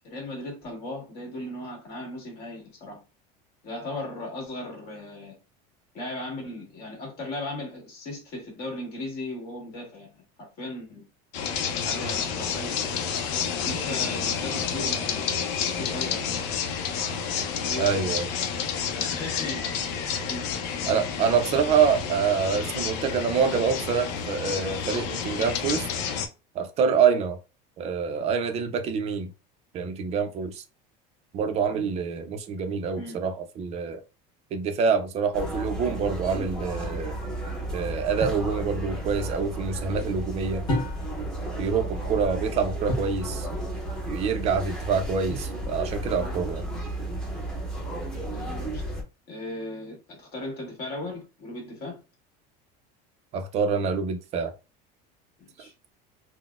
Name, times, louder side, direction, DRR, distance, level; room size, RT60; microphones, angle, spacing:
voice 1, 0.1-3.0 3.6-5.3 5.9-10.2 10.6-11.0 11.8-12.8 13.6-15.4 15.7-16.3 17.5-17.9 19.1-19.6 20.3-20.7 21.2-21.3 33.0-33.2 48.3-48.8 49.3-52.0 55.4-55.7, left 1 dB, 50° left, 1.6 m, -37 dB
sound 1, 11.3-26.3, left 7 dB, 75° left, 0.6 m, -30 dB
voice 2, 17.8-18.3 20.9-25.9 26.5-27.4 27.8-29.3 29.7-30.6 31.3-34.0 34.5-37.2 37.7-40.6 41.6-43.5 44.1-46.6 53.3-54.5, right 6 dB, 30° right, 0.4 m, -26 dB
sound 2, 35.3-49.0, right 1 dB, 5° left, 0.7 m, -33 dB
sound 3, 38.2-38.5 40.7-41.3 42.9-43.2 45.3-45.8, left 1 dB, 20° left, 1.4 m, -31 dB
3.8 x 2.1 x 2.4 m
cardioid pair, 160°, 21 cm